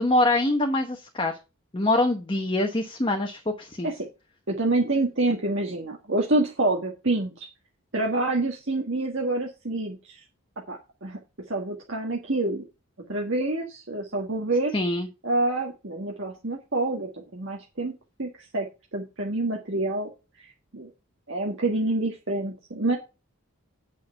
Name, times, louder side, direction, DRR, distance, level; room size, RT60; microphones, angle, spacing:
voice 1, 0.0-1.3 1.7-3.9 14.7-15.1, left 2 dB, 25° left, 4 dB, 1.1 m, -24 dB
voice 2, 4.5-7.5 7.9-10.2 10.7-11.2 11.5-12.6 13.1-14.7 15.2-17.9 18.2-18.7 18.9-20.1 20.4-20.9 21.3-23.0, right 2 dB, 55° right, 0 dB, 1.6 m, -27 dB
8.5 x 6.2 x 5.7 m, 0.28 s
head